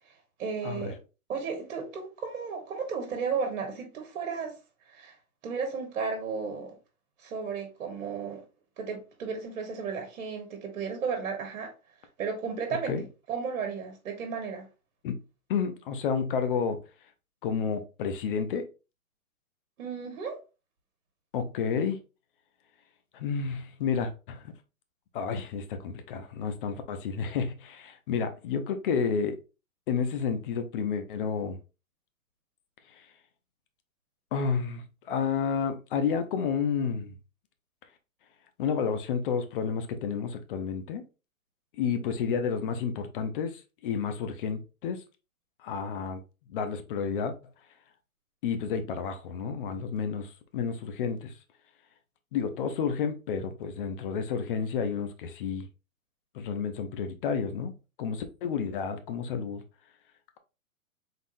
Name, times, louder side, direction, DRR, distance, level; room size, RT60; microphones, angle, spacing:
voice 1, 0.4-1.0 1.3-4.6 4.9-5.2 5.4-6.7 7.2-8.4 8.8-11.7 12.2-12.9 13.3-14.7 19.8-20.4, right 5 dB, 60° right, 1.5 m, -34 dB
voice 2, 15.5-16.8 17.4-18.7 21.3-22.0 23.1-24.5 25.1-29.4 29.9-31.6 32.9-33.1 34.3-37.1 38.6-41.0 41.8-45.0 45.6-46.2 46.5-47.3 48.4-51.3 52.3-55.7 56.3-59.6, left 6 dB, 40° left, 0.7 m, -30 dB
3.9 x 3.5 x 2.6 m
hypercardioid pair, 130°, 43 cm